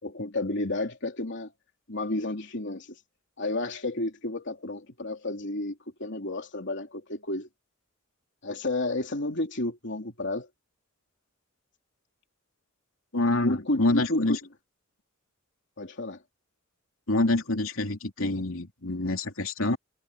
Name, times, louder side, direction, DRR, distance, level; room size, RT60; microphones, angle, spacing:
voice 1, 0.0-1.5 1.9-3.0 3.4-7.5 8.4-10.5 13.4-14.4 15.8-16.2, left 2 dB, 60° left, 3.4 m, -31 dB
voice 2, 13.1-14.4 17.1-19.8, left 2 dB, 80° left, 3.0 m, -26 dB
head